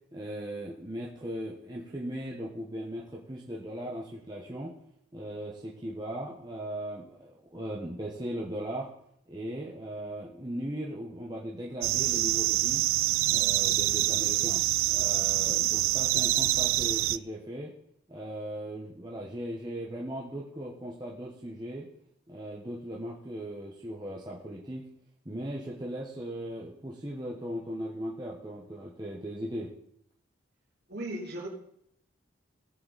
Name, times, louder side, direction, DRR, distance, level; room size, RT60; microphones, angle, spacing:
voice 1, 0.1-4.7 5.1-8.9 9.3-12.8 13.3-14.6 14.9-17.7 18.1-21.9 22.3-24.9 25.2-29.7, right 1 dB, 20° right, -4 dB, 1.2 m, -38 dB
sound 1, 11.8-17.2, right 16 dB, 80° right, 0.4 m, -26 dB
voice 2, 30.9-31.5, right 1 dB, 50° right, -3 dB, 3.5 m, -36 dB
17.5 x 7.8 x 4.1 m, 0.75 s
head